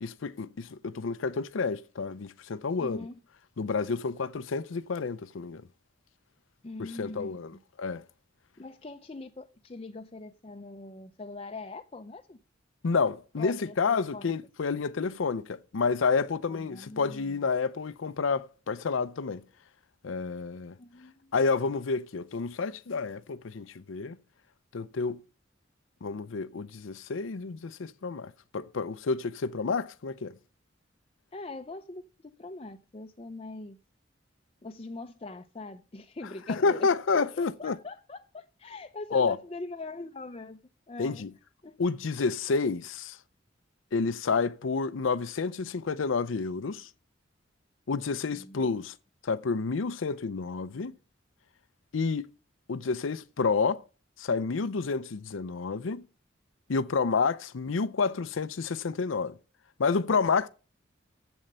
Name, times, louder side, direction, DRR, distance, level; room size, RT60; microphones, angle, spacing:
voice 1, 0.0-3.1 3.6-5.6 6.8-8.0 12.8-19.4 20.0-20.8 21.3-24.2 24.7-25.2 26.0-30.3 36.5-37.8 39.1-39.4 41.0-41.3 41.8-43.2 43.9-46.9 47.9-48.9 49.2-50.9 51.9-52.3 52.7-53.8 54.2-56.1 56.7-59.4 59.8-60.5, left 4 dB, 85° left, 0.5 m, -29 dB
voice 2, 2.8-3.2 6.6-7.4 8.6-12.4 13.4-14.3 16.5-17.4 20.8-21.3 31.3-33.8 34.6-36.9 37.1-40.6 40.9-41.3 41.6-41.8 48.3-48.7, left 3 dB, 30° left, 0.5 m, -42 dB
7.9 x 7.3 x 6.6 m
head